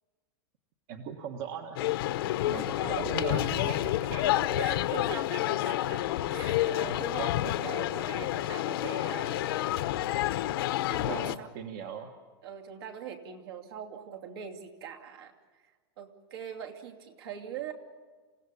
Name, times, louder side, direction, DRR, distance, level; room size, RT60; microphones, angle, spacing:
voice 1, 0.9-1.8 2.4-3.8 11.1-12.1, right 7 dB, 45° right, 5 dB, 1.4 m, -39 dB
sound 1, 1.8-11.4, left 14 dB, 60° left, 0.9 m, -29 dB
voice 2, 2.7-9.7 10.9-11.5 12.4-15.3 16.0-17.7, right 9 dB, 65° right, 3 dB, 2.7 m, -42 dB
28.0 x 16.0 x 8.4 m, 1.4 s
supercardioid pair, 165°, 14 cm